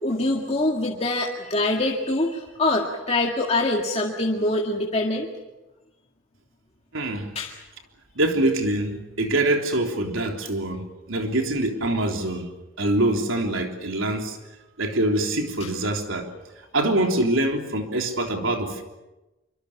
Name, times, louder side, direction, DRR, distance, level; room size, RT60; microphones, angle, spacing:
voice 1, 0.0-5.3 7.4-7.6 15.6-15.7, left 2 dB, 30° left, -1 dB, 2.1 m, -24 dB
voice 2, 6.9-7.3 8.2-12.5 12.8-14.4 14.8-16.3 16.7-18.8, right 1 dB, 85° right, 3 dB, 3.5 m, -24 dB
26.0 x 24.5 x 7.3 m, 1.0 s
head